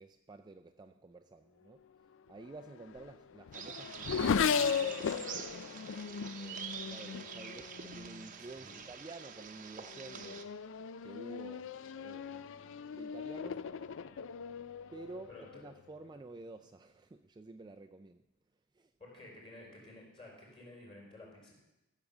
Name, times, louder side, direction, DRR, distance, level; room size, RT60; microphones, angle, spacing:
voice 1, 0.0-1.8 2.3-5.4 6.3-10.5 11.0-11.7 12.0-12.4 12.9-13.6 14.9-18.2 18.8-18.9, right 3 dB, 20° right, 5 dB, 0.4 m, -51 dB
Race car auto racing / Accelerating revving vroom, 2.4-8.3 9.1-9.5 9.9-15.8, left 6 dB, 60° left, 0.4 m, -37 dB
sound 1, 3.5-10.4, right 7 dB, 40° right, 0.8 m, -46 dB
voice 2, 8.4-8.8 15.3-15.5 19.0-21.5, left 2 dB, 25° left, -3 dB, 4.4 m, -52 dB
13.5 x 6.6 x 7.2 m, 0.95 s
head